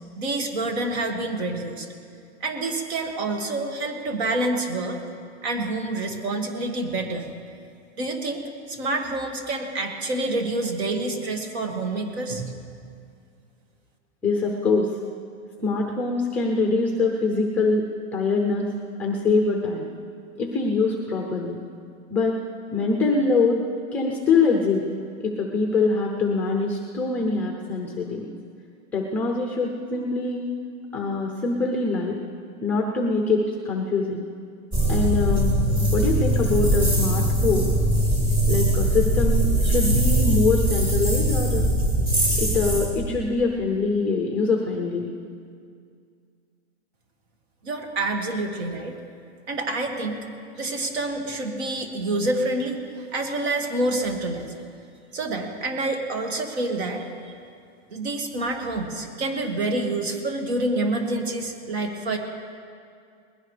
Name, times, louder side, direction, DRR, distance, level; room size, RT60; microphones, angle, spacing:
voice 1, 0.2-1.9 2.4-5.0 5.4-7.3 8.0-8.4 8.7-12.6 47.6-49.0 49.5-50.2 50.5-54.5 55.1-57.3 57.9-62.2, right 2 dB, 65° right, 4 dB, 2.1 m, -27 dB
voice 2, 14.2-15.0 15.6-17.9 18.1-18.7 19.0-19.9 20.4-21.6 22.1-22.4 22.7-23.6 23.9-24.8 25.2-28.3 28.9-30.4 30.9-32.2 32.6-34.2 34.9-35.5 35.9-37.7 38.5-41.6 42.4-45.1, left 3 dB, 5° left, 1 dB, 0.5 m, -24 dB
sound 1, 34.7-42.9, right 1 dB, 25° right, 3.0 m, -21 dB
20.0 x 16.5 x 3.3 m, 2.3 s
supercardioid pair, 165°, 34 cm